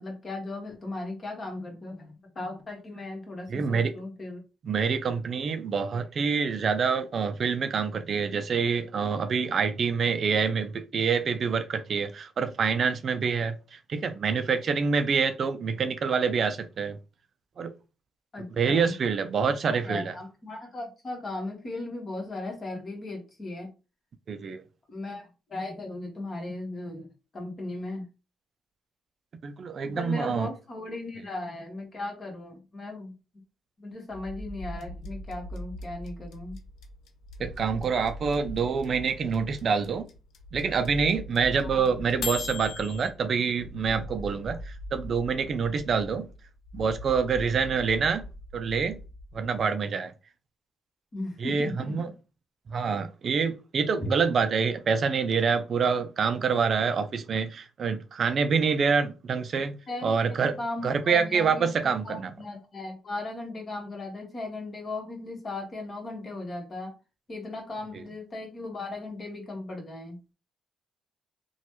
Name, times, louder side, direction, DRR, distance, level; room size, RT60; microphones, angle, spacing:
voice 1, 0.0-4.4 18.3-18.9 19.4-19.5 19.8-23.7 24.9-28.1 29.9-33.1 33.8-36.6 41.7-41.8 51.1-52.0 54.0-54.1 59.9-60.1 60.4-61.7 62.0-66.9 67.3-70.2, left 2 dB, 40° left, 1.3 m, -37 dB
voice 2, 3.5-3.9 4.6-17.0 17.6-17.7 18.6-20.2 24.3-24.6 29.4-30.5 37.4-40.1 40.5-46.3 46.7-48.2 48.5-49.0 49.3-50.1 51.4-52.1 52.7-60.6 60.8-62.3, right 5 dB, 50° right, 0.4 m, -26 dB
sound 1, 34.1-49.6, equal, 5° right, 1.5 m, -42 dB
sound 2, 34.8-43.1, left 7 dB, 75° left, 0.5 m, -37 dB
3.0 x 2.2 x 3.0 m
cardioid pair, 90°, 0 cm